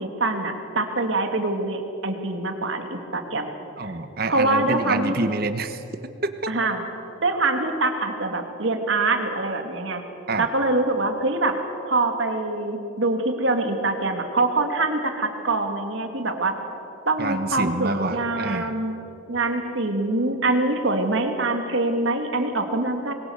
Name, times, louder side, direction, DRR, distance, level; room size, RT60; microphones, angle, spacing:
voice 1, 0.0-3.5 3.8-3.9 4.3-5.2 6.5-6.8 7.2-10.0 10.4-11.6 11.8-16.5 17.1-18.9 19.3-23.1, right 2 dB, 65° right, 5 dB, 2.5 m, -24 dB
voice 2, 3.8-5.8 10.3-10.5 17.2-18.8, right 2 dB, 45° right, 10 dB, 1.3 m, -27 dB
26.0 x 22.5 x 7.2 m, 2.9 s
head